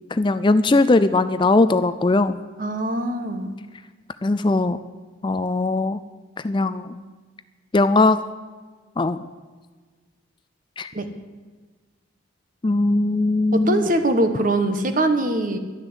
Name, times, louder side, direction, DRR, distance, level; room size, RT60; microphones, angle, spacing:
voice 1, 0.1-2.4 4.2-4.8 5.2-6.0 6.4-7.0 7.7-8.2 9.0-9.2 10.8-10.9 12.6-13.9, left 2 dB, 25° left, 12 dB, 0.4 m, -19 dB
voice 2, 2.6-3.6 10.9-11.0 13.5-15.6, right 1 dB, 40° right, 8 dB, 1.3 m, -22 dB
12.0 x 11.0 x 8.1 m, 1.4 s
head